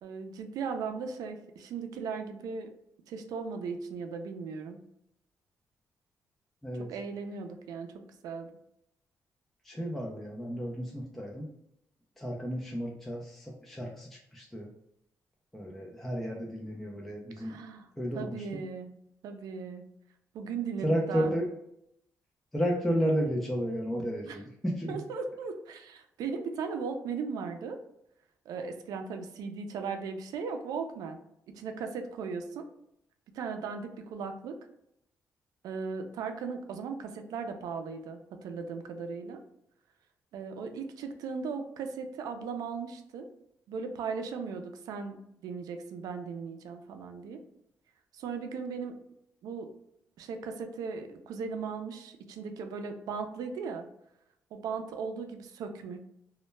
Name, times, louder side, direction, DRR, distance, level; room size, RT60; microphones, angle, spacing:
voice 1, 0.0-2.7 3.1-4.8 6.8-8.5 17.4-17.9 18.1-18.9 19.2-19.8 20.3-21.3 24.3-24.4 24.9-27.8 28.5-31.2 31.5-32.7 33.3-34.6 35.6-39.4 40.3-43.3 43.7-47.4 48.1-49.0 49.4-49.7 50.2-53.9 54.5-56.0, right 5 dB, 90° right, 6 dB, 0.3 m, -37 dB
voice 2, 6.6-6.9 9.6-11.5 12.2-14.7 15.5-17.6 18.0-18.6 20.8-21.5 22.5-25.0, equal, 5° left, -2 dB, 0.3 m, -32 dB
2.1 x 2.0 x 3.1 m, 0.78 s
cardioid pair, 125°, 6 cm